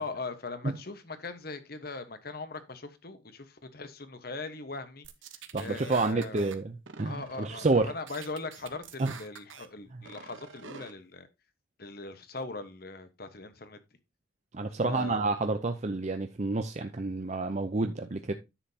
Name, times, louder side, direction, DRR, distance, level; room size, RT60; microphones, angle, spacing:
voice 1, 0.0-5.1 5.6-6.5 7.0-11.3 11.8-13.8 14.8-15.2, left 3 dB, 50° left, 1.2 m, -40 dB
sound 1, 5.0-6.6 6.9-7.8 8.1-9.7 10.0-10.9, right 6 dB, 75° right, 1.1 m, -47 dB
voice 2, 5.5-7.9 9.0-9.1 14.5-18.3, right 3 dB, 35° right, 0.6 m, -29 dB
10.0 x 7.4 x 2.8 m
head